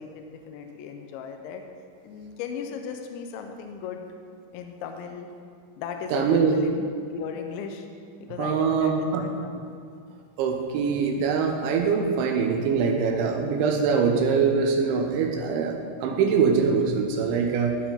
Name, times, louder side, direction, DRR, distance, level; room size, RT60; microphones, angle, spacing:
voice 1, 0.0-1.6 2.0-4.0 4.5-5.3 5.8-7.9 8.3-9.7, left 6 dB, 80° left, 5 dB, 2.7 m, -36 dB
voice 2, 6.1-6.6 8.4-9.2 10.4-17.8, right 5 dB, 80° right, 2 dB, 3.1 m, -23 dB
14.5 x 4.9 x 3.8 m, 2.3 s
omnidirectional pair, 5.5 m